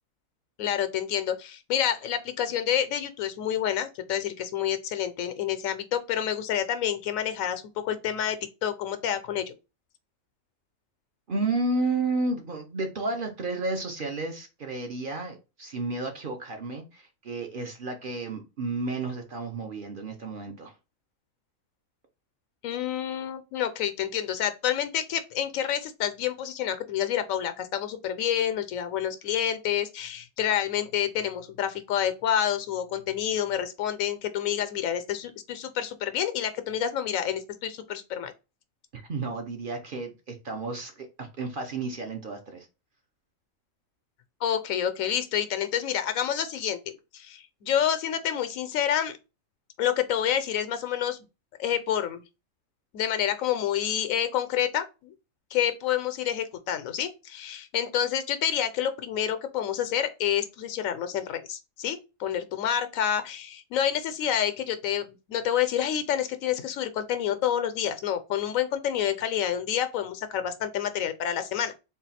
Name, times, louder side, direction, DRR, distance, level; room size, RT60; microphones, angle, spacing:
voice 1, 0.6-8.4 8.6-9.5 22.6-38.3 44.4-46.8 47.1-49.2 49.8-51.2 51.6-52.2 52.9-55.1 55.5-71.7, left 10 dB, 80° left, 1.0 m, -28 dB
voice 2, 11.3-20.7 38.9-42.7, right 3 dB, 50° right, 0.7 m, -32 dB
3.8 x 2.4 x 4.1 m
omnidirectional pair, 1.4 m